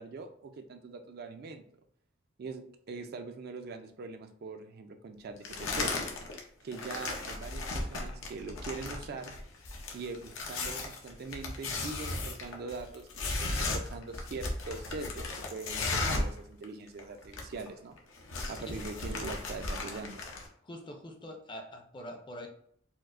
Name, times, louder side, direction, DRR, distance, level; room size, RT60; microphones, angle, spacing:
voice 1, 0.0-1.6 2.4-6.0 6.6-9.3 9.9-18.0 18.5-20.2, right 3 dB, 55° right, 7 dB, 0.4 m, -42 dB
sound 1, 5.4-6.4 6.7-16.4 16.6-16.7 17.0-17.7 18.0-20.5, left 2 dB, 90° left, 0.7 m, -35 dB
voice 2, 20.6-22.5, left 1 dB, 25° left, 4 dB, 0.5 m, -44 dB
4.4 x 2.0 x 2.4 m, 0.65 s
head